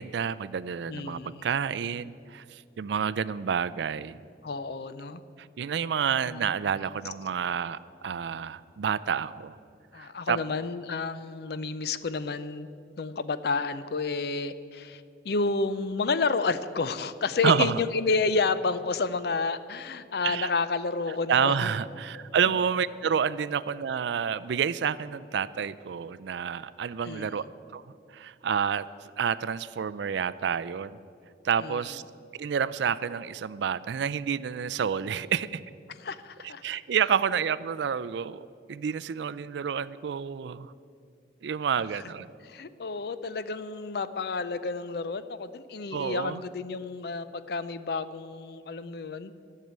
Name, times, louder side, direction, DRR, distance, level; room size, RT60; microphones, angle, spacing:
voice 1, 0.0-4.2 5.4-9.6 10.0-10.4 17.4-17.8 20.2-20.5 21.3-27.4 27.7-31.0 31.4-32.0 32.3-35.6 36.4-40.7 41.4-42.3 45.9-46.4, right 7 dB, 65° right, 16 dB, 0.4 m, -29 dB
voice 2, 0.9-1.5 4.4-5.2 6.3-6.5 9.9-12.7 13.0-21.7 27.0-27.4 31.6-31.8 36.0-36.6 41.9-42.0 42.4-49.3, left 4 dB, 55° left, 14 dB, 0.5 m, -30 dB
12.5 x 6.6 x 8.8 m, 2.4 s
head